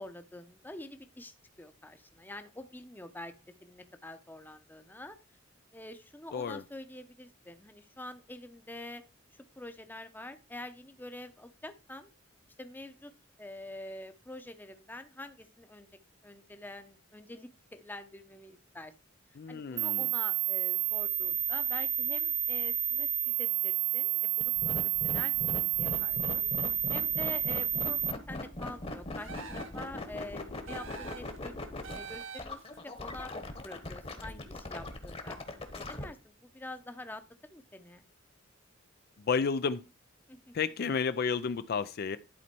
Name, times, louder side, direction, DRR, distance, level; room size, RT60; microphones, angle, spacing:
voice 1, 0.0-3.3 3.6-5.2 5.7-9.0 9.6-12.1 12.6-13.1 13.4-15.9 16.2-18.9 19.5-25.5 25.8-26.5 26.9-31.6 31.9-33.3 33.6-35.4 35.7-37.2 37.5-38.0 40.3-40.5, left 1 dB, 10° left, 0.7 m, -46 dB
voice 2, 6.3-6.6 19.4-20.1 39.3-39.8 40.5-42.2, left 5 dB, 55° left, 0.4 m, -31 dB
sound 1, 19.8-28.1, right 11 dB, 35° right, 0.3 m, -30 dB
sound 2, 24.4-36.0, left 2 dB, 30° left, 1.2 m, -39 dB
sound 3, 29.2-29.9 30.7-31.4 31.8-32.7, right 6 dB, 80° right, 1.3 m, -45 dB
11.0 x 4.2 x 4.4 m
head